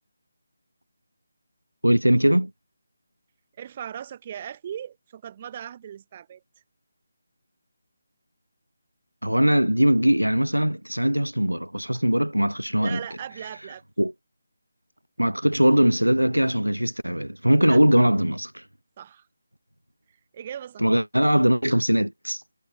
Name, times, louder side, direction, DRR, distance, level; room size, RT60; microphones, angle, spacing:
voice 1, 1.8-2.5 9.2-13.0 14.0-14.1 15.2-18.7 20.8-22.4, equal, 85° right, 0.4 m, -21 dB
voice 2, 3.6-6.4 12.8-13.8 17.7-17.8 19.0-19.3 20.3-20.9, right 9 dB, 25° right, 2.2 m, -38 dB
figure-of-eight pair, 155°, 0 cm